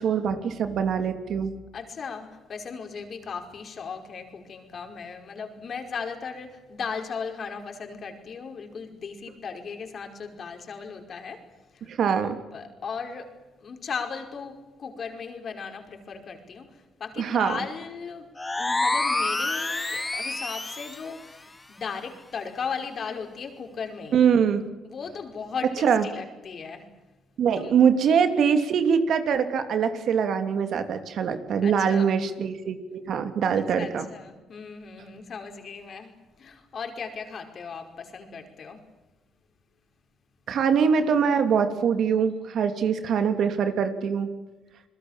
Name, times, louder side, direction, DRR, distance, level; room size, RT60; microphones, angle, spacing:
voice 1, 0.0-1.5 11.9-12.4 17.2-17.6 24.1-24.6 25.8-26.0 27.4-34.0 40.5-44.3, right 7 dB, 65° right, 8 dB, 2.9 m, -23 dB
voice 2, 1.7-11.4 11.7-11.9 12.5-13.3 13.6-18.3 18.6-24.2 24.8-26.9 27.6-27.8 31.6-32.2 33.6-38.8, left 5 dB, 50° left, 5 dB, 5.1 m, -37 dB
sound 1, 18.4-21.1, left 2 dB, 15° left, 2.2 m, -27 dB
28.5 x 21.0 x 7.5 m, 1.1 s
cardioid pair, 90°, 0 cm